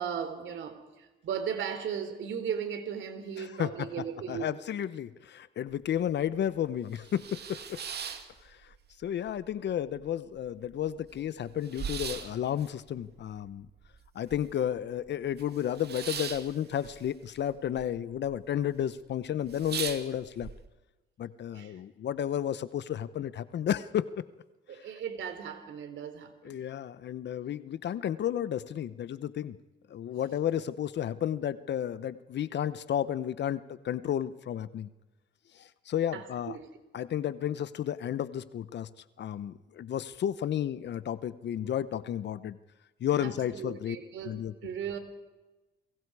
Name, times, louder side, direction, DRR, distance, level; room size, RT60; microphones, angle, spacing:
voice 1, 0.0-4.5 21.5-21.8 24.7-26.6 36.1-36.7 43.2-44.3 44.6-45.0, right 8 dB, 75° right, 9 dB, 3.5 m, -37 dB
voice 2, 3.4-3.9 4.3-7.8 8.4-8.7 9.0-13.7 14.1-20.5 21.2-24.1 24.7-24.8 26.4-29.6 29.9-34.9 35.5-36.6 36.9-38.9 39.2-42.6 43.0-44.0 44.2-44.7, left 10 dB, 60° left, 15 dB, 0.9 m, -32 dB
sound 1, 5.7-5.8 6.2-6.3 6.8-9.0 9.3-10.0 10.4-10.5 10.6-14.8 15.1-17.9 18.1-18.7 19.0-19.1 19.4-20.5, right 7 dB, 55° right, 2.3 m, -40 dB
29.5 x 22.5 x 4.8 m, 1.1 s
cardioid pair, 90°, 20 cm